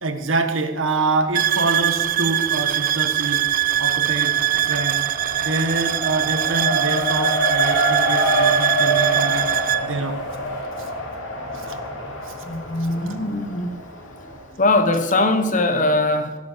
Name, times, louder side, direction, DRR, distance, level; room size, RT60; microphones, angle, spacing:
voice 1, 0.0-3.5 3.8-5.0 5.4-9.5 9.8-10.2 11.5-11.8 12.2-12.3 13.1-13.2, right 3 dB, 80° right, 1.5 m, -26 dB
sound 1, 1.3-9.9, right 12 dB, 45° right, 0.3 m, -22 dB
Race car auto racing, 2.0-2.7 3.1-14.4, right 1 dB, 80° left, 3.6 m, -26 dB
voice 2, 12.4-13.9 14.5-16.4, left 2 dB, 40° left, 1.3 m, -21 dB
17.5 x 11.0 x 5.3 m
head